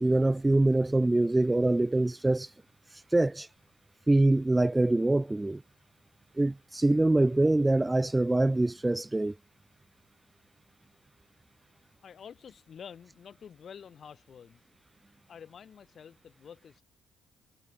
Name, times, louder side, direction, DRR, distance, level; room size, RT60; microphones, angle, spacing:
voice 1, 0.0-2.5 2.9-3.5 4.1-5.6 6.4-9.3, right 2 dB, 15° right, 0.9 m, -24 dB
voice 2, 12.0-14.6 15.3-16.8, left 7 dB, 55° left, 7.9 m, -48 dB
hypercardioid pair, 55°, 0 cm